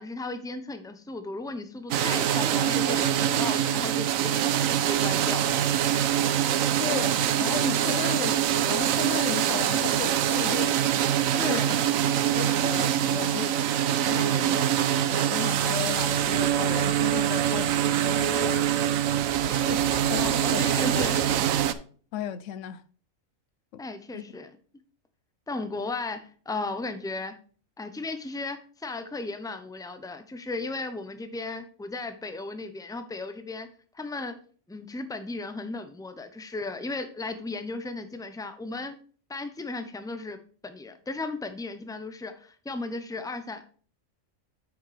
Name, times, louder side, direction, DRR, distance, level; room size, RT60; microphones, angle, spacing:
voice 1, 0.0-5.4 11.4-11.8 19.4-19.7 20.2-21.2 23.8-24.5 25.5-27.3 27.8-33.7 33.9-34.3 34.7-39.0 39.3-43.7, left 3 dB, 5° left, 0.6 m, -35 dB
sound 1, 1.9-21.7, right 10 dB, 85° right, 1.1 m, -24 dB
voice 2, 6.8-10.8 11.4-11.8 12.3-13.6 14.0-19.0 19.4-21.1 22.1-22.8 23.7-23.8 24.1-24.3, left 10 dB, 70° left, 0.9 m, -36 dB
8.6 x 6.3 x 3.4 m
omnidirectional pair, 1.4 m